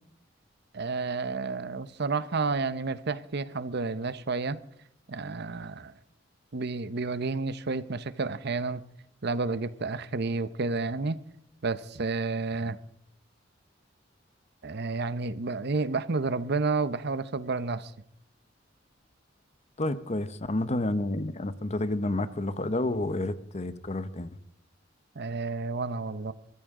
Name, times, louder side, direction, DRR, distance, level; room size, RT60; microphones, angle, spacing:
voice 1, 0.7-4.6 5.1-5.9 6.5-8.8 9.2-11.2 11.6-12.8 14.6-17.9 25.2-26.3, right 3 dB, 60° right, 0.8 m, -30 dB
voice 2, 19.8-24.3, left 2 dB, 35° left, 0.9 m, -30 dB
24.0 x 14.0 x 3.7 m
head